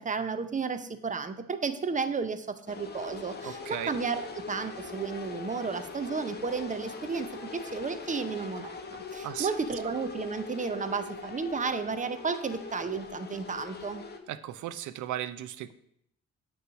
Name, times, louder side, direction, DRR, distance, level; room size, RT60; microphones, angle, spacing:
voice 1, 0.0-14.0, right 5 dB, 25° right, 11 dB, 0.6 m, -33 dB
sound 1, 2.7-14.2, left 4 dB, 35° left, 1.0 m, -41 dB
voice 2, 3.4-3.9 9.2-9.5 14.3-15.7, right 12 dB, 80° right, 14 dB, 0.6 m, -36 dB
8.1 x 3.2 x 6.2 m, 0.72 s
cardioid pair, 90°, 30 cm